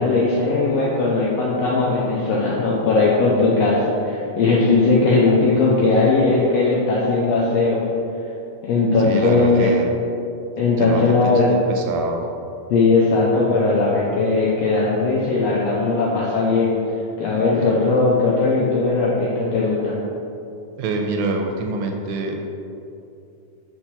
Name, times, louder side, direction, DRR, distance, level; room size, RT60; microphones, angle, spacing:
voice 1, 0.0-7.8 8.6-9.7 10.6-11.5 12.7-16.7 17.2-20.0, left 3 dB, 80° left, -4 dB, 1.5 m, -18 dB
voice 2, 9.0-9.9 10.8-12.2 20.8-22.4, right 3 dB, 80° right, 3 dB, 1.9 m, -25 dB
4.6 x 4.2 x 5.6 m, 2.7 s
omnidirectional pair, 3.6 m